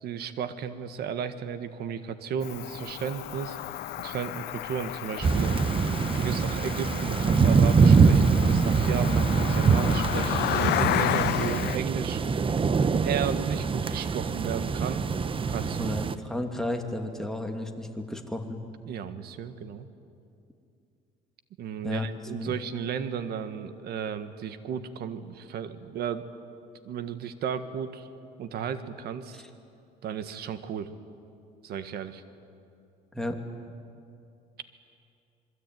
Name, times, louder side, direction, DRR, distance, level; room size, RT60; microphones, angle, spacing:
voice 1, 0.0-3.6 4.0-12.2 13.0-15.0 15.5-15.9 18.9-19.9 21.6-26.2 26.9-28.1 28.4-29.4 30.0-30.9 31.6-32.2, right 8 dB, 70° right, 10 dB, 1.7 m, -34 dB
Cricket, 2.4-11.8, left 14 dB, 75° left, 0.7 m, -32 dB
sound 1, 5.2-16.1, right 5 dB, 30° right, 1.0 m, -24 dB
voice 2, 15.8-18.6 21.8-22.1 22.4-22.5 29.3-29.4 33.1-33.4, left 1 dB, 5° left, 3 dB, 2.7 m, -33 dB
26.5 x 22.5 x 9.4 m, 2.6 s
cardioid pair, 110°, 17 cm